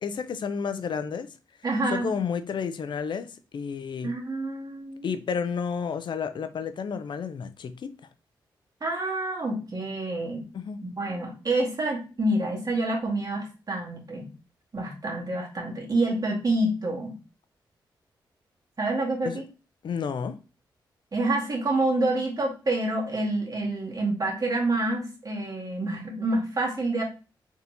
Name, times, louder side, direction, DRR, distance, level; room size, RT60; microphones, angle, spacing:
voice 1, 0.0-1.3 1.9-4.1 5.0-7.9 10.5-10.8 19.2-19.4 19.8-20.4, left 6 dB, 65° left, 0.5 m, -31 dB
voice 2, 1.6-2.1 4.0-5.1 8.8-10.4 10.8-14.3 14.7-17.1 18.8-19.4 21.1-27.0, right 2 dB, 45° right, 2.0 m, -27 dB
4.0 x 3.5 x 2.9 m
cardioid pair, 65°, 8 cm